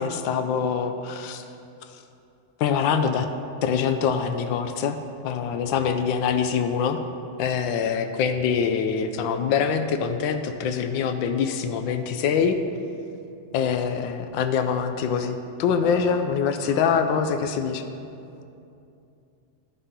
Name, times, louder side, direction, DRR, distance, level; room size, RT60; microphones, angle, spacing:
voice 1, 0.0-1.5 1.9-2.0 2.6-3.3 3.6-5.0 5.2-7.0 7.4-12.6 13.5-17.8, left 6 dB, 85° left, 8 dB, 1.3 m, -24 dB
voice 2, 15.7-16.1 16.5-17.0, equal, 65° right, -6 dB, 2.4 m, -41 dB
14.5 x 5.5 x 3.7 m, 2.6 s
omnidirectional pair, 2.0 m